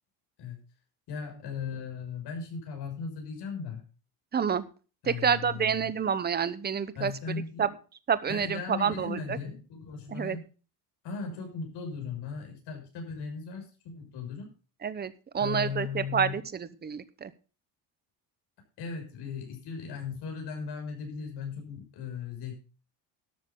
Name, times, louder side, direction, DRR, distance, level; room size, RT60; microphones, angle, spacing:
voice 1, 1.1-3.8 5.0-5.9 6.9-7.7 8.3-10.4 11.0-14.5 15.4-16.4 18.8-22.5, left 5 dB, 70° left, 3 dB, 6.6 m, -37 dB
voice 2, 4.3-4.7 5.0-7.7 8.1-9.4 10.1-10.4 14.8-17.3, right 7 dB, 25° right, 14 dB, 0.9 m, -29 dB
13.0 x 12.5 x 3.8 m, 0.35 s
cardioid pair, 165°, 42 cm